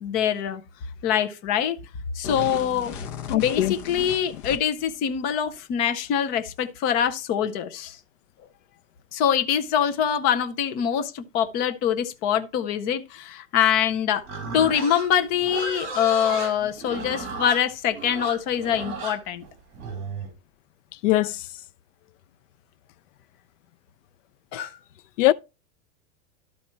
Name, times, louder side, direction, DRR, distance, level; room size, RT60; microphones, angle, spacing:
voice 1, 0.0-0.6 1.0-1.8 2.1-2.9 3.3-8.0 9.1-14.2 14.5-19.4 24.5-24.8, left 9 dB, 25° left, 0.6 m, -24 dB
sound 1, 2.2-4.9, left 7 dB, 40° left, 1.1 m, -36 dB
voice 2, 3.3-3.7 21.0-21.5 25.2-25.3, left 16 dB, 75° left, 0.5 m, -21 dB
Livestock farm animals working animals, 14.2-20.3, right 4 dB, 35° right, 3.5 m, -34 dB
12.0 x 4.2 x 4.4 m
supercardioid pair, 170°, 38 cm